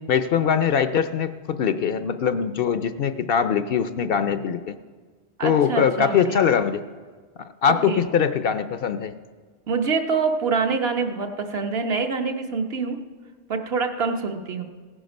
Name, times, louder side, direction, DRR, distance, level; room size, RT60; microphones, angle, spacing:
voice 1, 0.1-4.8 5.4-6.8 7.6-9.1, left 7 dB, 65° left, 11 dB, 0.7 m, -22 dB
voice 2, 5.4-6.4 7.9-8.1 9.7-13.0 13.5-14.6, right 4 dB, 65° right, 4 dB, 1.2 m, -25 dB
16.5 x 10.0 x 5.3 m, 1.5 s
omnidirectional pair, 1.2 m